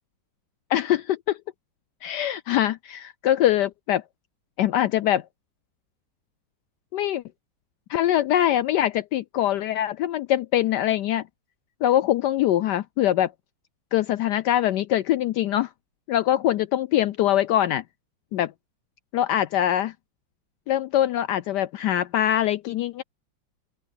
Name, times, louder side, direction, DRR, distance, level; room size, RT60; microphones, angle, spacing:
voice 1, 0.7-1.4 2.0-4.0 4.6-5.2 6.9-7.2 7.9-11.2 11.8-13.3 13.9-15.7 16.1-17.8 18.3-18.5 19.1-19.9 20.7-23.0, left 12 dB, 75° left, 1.0 m, -23 dB
open air
omnidirectional pair, 2.1 m